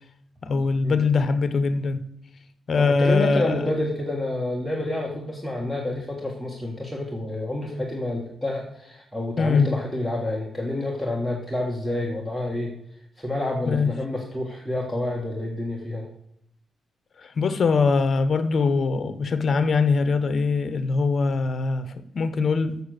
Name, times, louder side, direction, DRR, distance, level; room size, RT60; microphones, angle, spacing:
voice 1, 0.4-2.0 2.7-3.7 9.4-9.7 13.7-13.9 17.2-22.8, left 4 dB, 50° left, 0.9 m, -22 dB
voice 2, 2.7-12.7 13.2-16.1, left 1 dB, 5° left, 1.5 m, -28 dB
7.0 x 6.7 x 6.5 m
cardioid pair, 105°, 0 cm